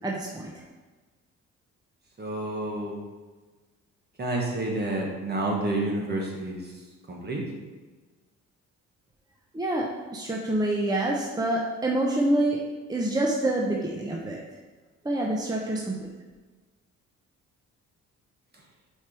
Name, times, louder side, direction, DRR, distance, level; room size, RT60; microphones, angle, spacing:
voice 1, 0.0-0.5 9.5-9.9 10.1-12.6 12.9-14.4 15.0-16.1, right 1 dB, 15° right, -2 dB, 0.7 m, -26 dB
voice 2, 2.2-3.0 4.2-6.6 7.1-7.4, right 2 dB, 35° right, -2 dB, 1.6 m, -29 dB
4.7 x 4.6 x 4.7 m, 1.3 s
cardioid pair, 90°, 30 cm